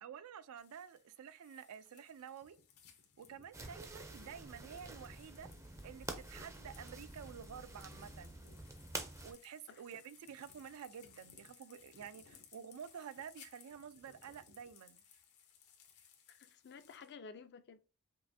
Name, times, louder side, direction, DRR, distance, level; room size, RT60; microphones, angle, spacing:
voice 1, 0.0-2.6 3.2-5.5 5.8-8.4 9.2-15.0, right 8 dB, 75° right, 0.4 m, -50 dB
sound 1, 0.6-17.1, left 6 dB, 75° left, 0.9 m, -63 dB
sound 2, 3.5-9.3, right 2 dB, 15° right, 0.5 m, -48 dB
voice 2, 16.3-17.8, left 5 dB, 50° left, 0.4 m, -53 dB
5.4 x 2.5 x 2.6 m
head